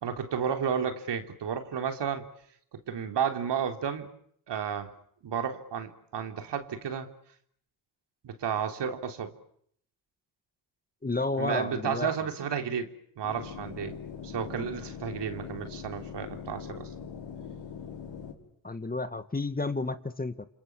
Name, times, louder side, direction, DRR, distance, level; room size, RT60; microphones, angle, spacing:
voice 1, 0.0-2.2 2.9-4.1 4.5-4.9 5.2-7.1 8.2-9.3 11.4-12.9 13.2-14.0 14.2-16.9, right 7 dB, 60° right, 5 dB, 3.6 m, -32 dB
voice 2, 11.0-12.1 14.5-14.7 18.6-20.5, left 3 dB, 20° left, 10 dB, 2.1 m, -31 dB
sound 1, 13.2-18.3, left 7 dB, 70° left, 6.1 m, -42 dB
28.5 x 26.5 x 7.4 m, 0.68 s
supercardioid pair, 55°, 47 cm